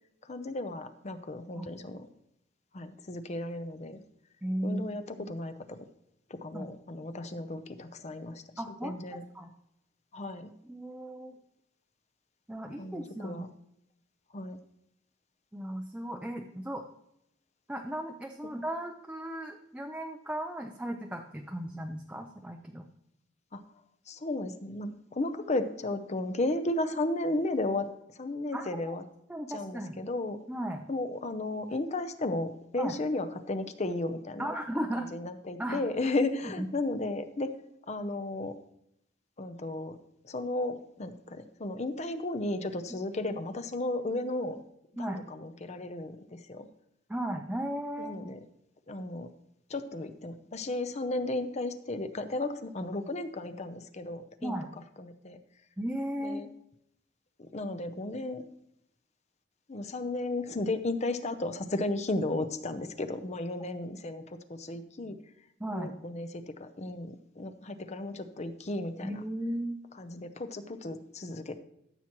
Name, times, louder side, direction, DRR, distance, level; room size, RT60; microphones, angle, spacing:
voice 1, 0.2-2.1 2.7-4.0 4.6-5.9 6.3-8.4 8.8-9.2 10.1-10.5 12.8-13.5 14.3-14.6 23.5-23.6 24.1-27.9 28.1-29.0 29.5-30.4 30.9-34.5 35.0-37.5 37.9-38.6 39.4-40.0 40.2-44.6 45.0-46.7 48.0-48.4 48.9-49.3 49.7-54.6 55.0-55.4 56.2-56.5 57.5-58.4 59.7-65.2 65.7-69.2 70.0-71.6, left 2 dB, 35° left, 9 dB, 0.7 m, -34 dB
voice 2, 4.4-4.8 6.5-6.7 8.6-9.0 9.3-9.5 10.6-11.4 12.5-13.4 15.5-16.9 17.7-22.8 28.5-29.0 29.3-30.0 30.5-30.8 32.8-32.9 34.4-35.1 35.6-35.8 36.6-36.7 45.0-45.2 47.1-48.2 54.4-54.7 55.8-56.4 65.6-65.9 69.0-69.8, right 1 dB, 5° right, 2 dB, 0.5 m, -36 dB
14.0 x 7.2 x 3.0 m, 0.78 s
head